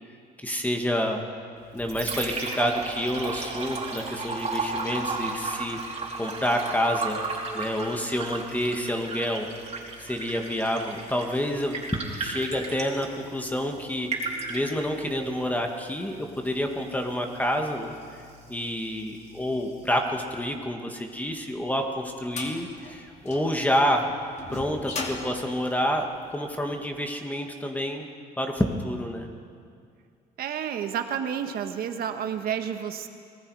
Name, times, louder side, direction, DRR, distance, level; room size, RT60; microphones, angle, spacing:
voice 1, 0.4-1.2 1.7-5.8 6.2-7.2 7.5-9.5 10.0-14.1 14.5-17.9 18.5-24.1 24.5-28.1 28.4-29.3, equal, 10° left, 3 dB, 1.8 m, -28 dB
Liquid, 1.6-20.6, right 3 dB, 40° right, 4.0 m, -36 dB
sound 1, 21.3-26.6, left 3 dB, 40° left, 2.5 m, -38 dB
voice 2, 30.4-33.1, right 8 dB, 65° right, 7 dB, 1.6 m, -30 dB
27.5 x 19.5 x 4.9 m, 2.3 s
cardioid pair, 110°, 17 cm